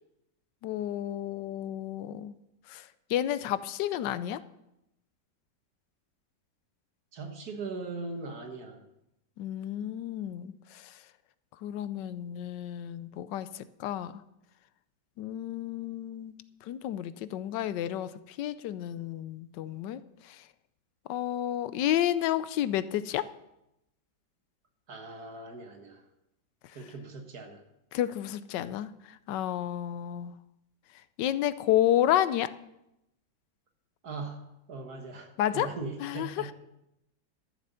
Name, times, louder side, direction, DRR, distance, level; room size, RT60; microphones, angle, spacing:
voice 1, 0.6-2.3 2.7-4.4 9.4-11.0 11.6-14.2 15.2-16.4 16.6-20.4 21.1-23.2 27.9-30.3 31.2-32.5 35.4-35.7 36.0-36.5, left 12 dB, 80° left, 15 dB, 1.3 m, -31 dB
voice 2, 7.1-8.8 24.9-26.1 26.7-27.6 34.0-36.5, right 3 dB, 60° right, 5 dB, 1.9 m, -40 dB
12.5 x 7.6 x 6.8 m, 0.85 s
omnidirectional pair, 1.9 m